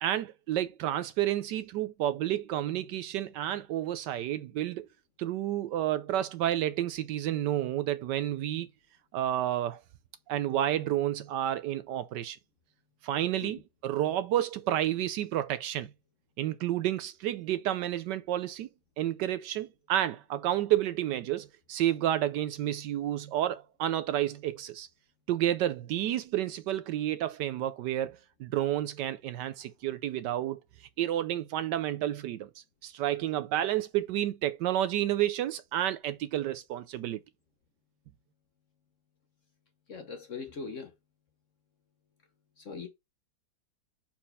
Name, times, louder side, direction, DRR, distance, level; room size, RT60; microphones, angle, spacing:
voice 1, 0.0-4.9 5.2-8.7 9.1-9.8 10.3-12.4 13.0-15.9 16.4-18.7 19.0-24.9 25.3-30.6 31.0-32.5 32.8-37.2, right 12 dB, 75° right, 1.1 m, -30 dB
voice 2, 39.9-40.9 42.6-42.9, left 5 dB, 50° left, 1.0 m, -40 dB
4.5 x 4.3 x 5.5 m
omnidirectional pair, 2.1 m